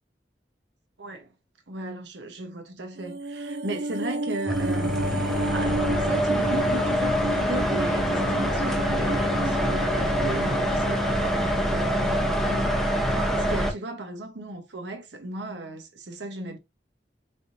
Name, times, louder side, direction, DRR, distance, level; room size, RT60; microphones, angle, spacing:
voice 1, 1.0-1.3 1.7-12.8 13.1-16.6, right 2 dB, 85° right, 1.0 m, -36 dB
sound 1, 3.0-11.4 11.7-11.8, right 2 dB, 60° right, 0.4 m, -32 dB
sound 2, 4.5-13.7, equal, ahead, 0.6 m, -25 dB
4.2 x 3.5 x 2.6 m
head